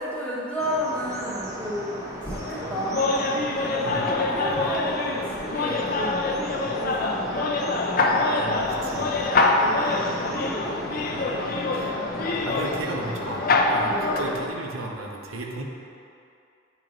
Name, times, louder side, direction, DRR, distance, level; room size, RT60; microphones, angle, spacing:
voice 1, 0.0-2.0 2.2-3.3 4.1-7.6 8.4-9.2 9.6-10.7 11.2-11.4 11.9-12.4 13.9-14.3, equal, 5° left, -7 dB, 1.0 m, -33 dB
sound 1, 0.6-14.2, equal, 15° right, 0.7 m, -37 dB
sound 2, 2.3-14.5, left 3 dB, 45° left, 0.4 m, -25 dB
voice 2, 8.4-9.1 11.1-11.2 11.7-13.5 13.7-15.6, right 2 dB, 90° right, 0 dB, 0.7 m, -35 dB
8.9 x 3.0 x 3.8 m, 2.6 s
head